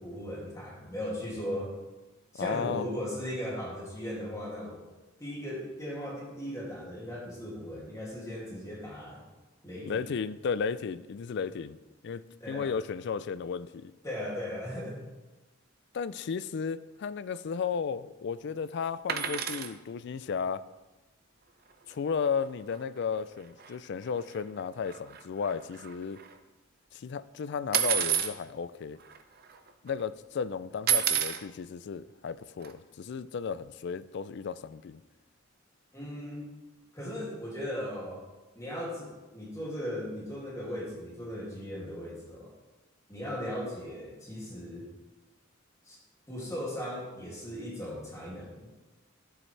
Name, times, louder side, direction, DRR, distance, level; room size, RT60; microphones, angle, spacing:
voice 1, 0.0-1.7 2.3-4.8 5.2-9.2 9.6-9.9 12.4-12.8 14.0-15.0 35.9-36.4 36.9-38.2 38.6-42.5 43.1-44.8 45.9-46.0 46.3-48.7, equal, 15° left, -5 dB, 2.4 m, -37 dB
voice 2, 2.4-2.9 9.9-11.8 12.0-13.9 15.9-20.6 21.9-26.2 26.9-29.0 29.8-35.0, left 6 dB, 60° left, 15 dB, 0.4 m, -34 dB
sound 1, 19.1-19.7 21.9-22.0 22.2-22.4 22.7-22.8 23.6-23.7 24.2-26.3 27.7-28.3 29.1-29.2 29.4-29.9 30.9-31.4 32.6-32.7, right 10 dB, 50° right, 0.6 m, -29 dB
11.5 x 7.5 x 3.3 m, 1.1 s
head